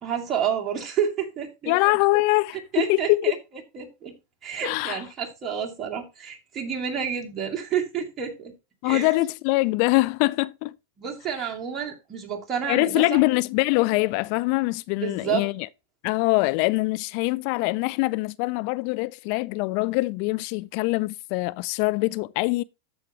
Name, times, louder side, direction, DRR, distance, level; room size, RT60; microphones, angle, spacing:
voice 1, 0.0-1.8 2.7-3.3 3.7-4.1 4.4-8.5 8.8-9.1 11.0-13.2 15.0-15.4, right 8 dB, 30° right, 2.3 m, -29 dB
voice 2, 1.7-3.3 4.6-5.0 8.8-10.7 12.7-15.7 16.0-22.6, left 22 dB, 55° left, 0.3 m, -23 dB
13.5 x 4.9 x 3.0 m
hypercardioid pair, 105°, 0 cm